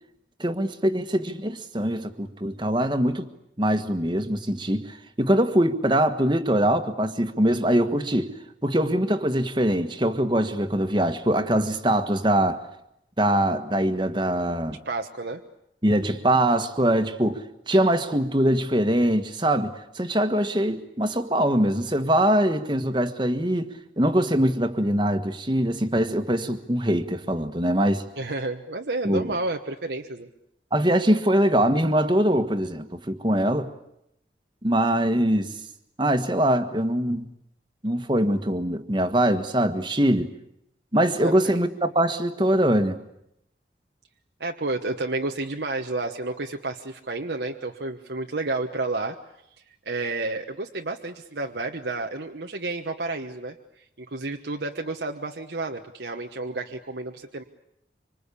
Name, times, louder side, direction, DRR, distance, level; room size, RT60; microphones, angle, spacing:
voice 1, 0.4-3.3 3.6-8.3 8.6-12.6 13.2-14.8 15.8-28.0 29.0-29.3 30.7-33.7 34.6-35.5 36.0-37.3 37.8-40.3 40.9-43.0, right 1 dB, 25° right, 1.6 m, -23 dB
voice 2, 14.8-15.4 28.2-30.3 41.2-41.4 44.4-49.2 49.8-57.4, right 2 dB, 80° right, 1.3 m, -31 dB
26.0 x 26.0 x 8.5 m
head